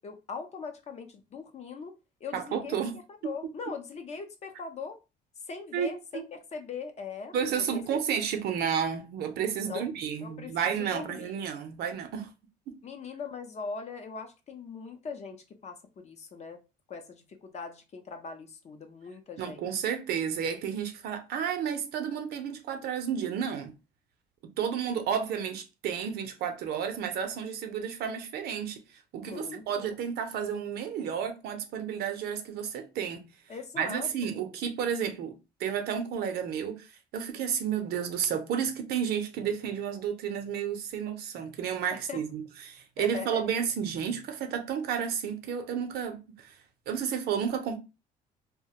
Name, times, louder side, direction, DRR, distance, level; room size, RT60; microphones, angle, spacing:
voice 1, 0.0-1.9 2.2-2.8 3.1-5.0 5.5-7.8 9.6-9.9 10.2-11.3 12.8-16.6 16.9-19.7 29.2-29.9 33.5-34.4 41.9-42.2 43.0-43.4, left 5 dB, 40° left, 0.6 m, -41 dB
voice 2, 2.3-2.9 5.7-6.2 7.3-12.3 12.7-12.8 19.4-23.7 24.4-33.3 33.8-46.6 46.9-47.8, right 8 dB, 70° right, 0.6 m, -32 dB
2.3 x 2.1 x 2.7 m
cardioid pair, 110°, 17 cm